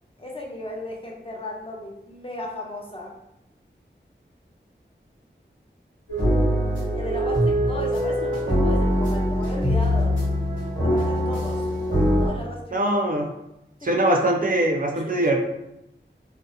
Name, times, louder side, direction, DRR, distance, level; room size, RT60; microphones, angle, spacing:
voice 1, 0.2-3.2 6.9-10.2 10.8-11.7 12.2-12.9 13.8-14.1 14.9-15.2, left 1 dB, 30° left, -2 dB, 0.5 m, -35 dB
sound 1, 6.1-12.3, equal, 80° left, 1.1 m, -22 dB
voice 2, 12.7-13.3 13.8-15.4, right 1 dB, 45° right, 2 dB, 0.4 m, -22 dB
2.5 x 2.0 x 2.6 m, 0.86 s
wide cardioid pair, 45°, 19 cm